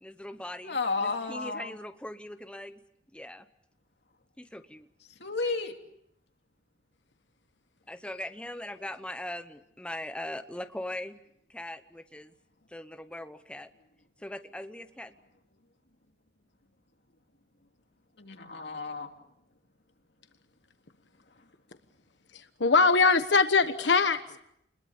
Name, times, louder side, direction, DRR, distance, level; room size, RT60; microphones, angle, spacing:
voice 1, 0.0-2.8 3.1-3.5 4.4-4.9 7.9-11.2 11.5-12.3 12.7-13.7 14.2-15.1, left 1 dB, 5° left, 9 dB, 0.9 m, -40 dB
voice 2, 0.6-1.7 5.2-5.7 18.2-19.1, left 3 dB, 70° left, 4 dB, 2.7 m, -32 dB
voice 3, 22.3-24.4, left 4 dB, 85° left, 9 dB, 1.2 m, -22 dB
28.0 x 21.5 x 7.1 m, 0.75 s
head